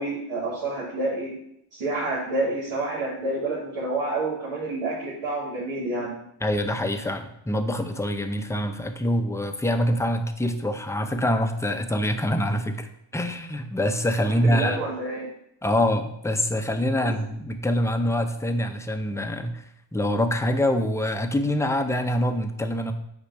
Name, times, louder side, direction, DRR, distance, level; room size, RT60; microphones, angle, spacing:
voice 1, 0.0-1.3 1.7-6.1 14.2-15.3 17.0-17.1, right 2 dB, 90° right, -9 dB, 2.4 m, -28 dB
voice 2, 6.4-12.9 13.1-14.8 15.6-19.6 19.9-22.9, left 1 dB, 5° left, 7 dB, 0.6 m, -25 dB
8.5 x 3.0 x 5.6 m, 0.76 s
cardioid pair, 80°, 49 cm